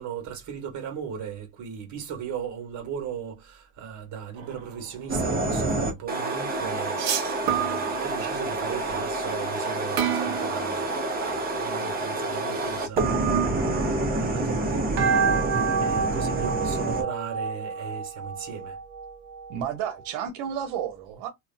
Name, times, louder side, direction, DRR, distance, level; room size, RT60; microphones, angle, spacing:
voice 1, 0.0-7.0 7.4-13.0 13.5-15.4 15.8-18.7, right 8 dB, 45° right, 1.2 m, -37 dB
sound 1, 4.4-4.7 7.0-8.4 10.0-11.2 13.0-14.2 15.0-19.6, right 6 dB, 70° right, 1.1 m, -28 dB
sound 2, 5.1-17.0, right 2 dB, 25° right, 0.7 m, -28 dB
voice 2, 19.5-21.3, right 9 dB, 90° right, 0.7 m, -31 dB
2.7 x 2.1 x 2.5 m
cardioid pair, 140°, 40 cm